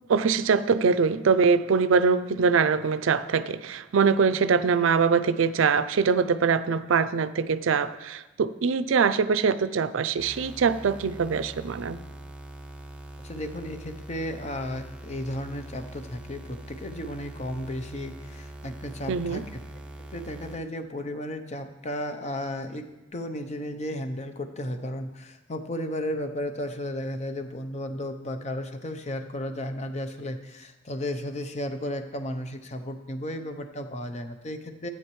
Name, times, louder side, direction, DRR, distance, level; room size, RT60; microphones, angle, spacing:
voice 1, 0.1-12.0 19.1-19.4, right 5 dB, 85° right, 13 dB, 0.4 m, -23 dB
sound 1, 10.2-20.6, right 1 dB, 5° right, 0.6 m, -43 dB
voice 2, 13.2-19.4 20.1-34.9, left 1 dB, 35° left, 6 dB, 0.7 m, -34 dB
15.0 x 8.5 x 3.1 m, 1.1 s
head